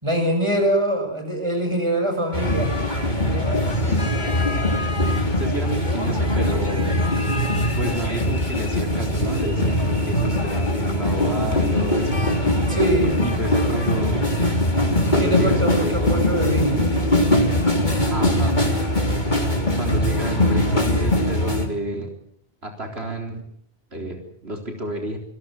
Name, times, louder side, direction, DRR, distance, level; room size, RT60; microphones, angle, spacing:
voice 1, 0.0-2.8 3.4-3.9 12.7-13.3 15.0-16.8, right 1 dB, 25° right, 5 dB, 6.6 m, -24 dB
sound 1, 2.3-21.7, left 1 dB, 45° left, 3.7 m, -21 dB
voice 2, 3.9-4.6 5.0-6.9 7.7-12.2 13.2-14.3 15.1-16.3 18.1-18.7 19.8-22.1 22.6-23.4 23.9-25.2, right 1 dB, 75° right, 3 dB, 4.2 m, -30 dB
27.0 x 21.0 x 7.7 m, 0.66 s
omnidirectional pair, 1.1 m